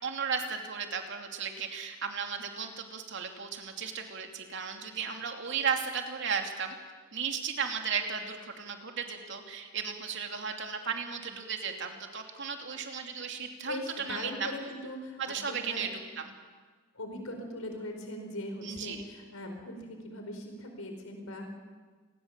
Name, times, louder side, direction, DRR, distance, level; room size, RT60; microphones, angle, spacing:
voice 1, 0.0-6.7 7.1-14.5 15.2-15.9 16.2-16.3 18.6-19.0, right 6 dB, 55° right, 4 dB, 2.8 m, -35 dB
voice 2, 13.7-15.8 16.9-21.5, left 1 dB, 80° left, 4 dB, 4.7 m, -40 dB
28.5 x 20.5 x 7.5 m, 1.4 s
head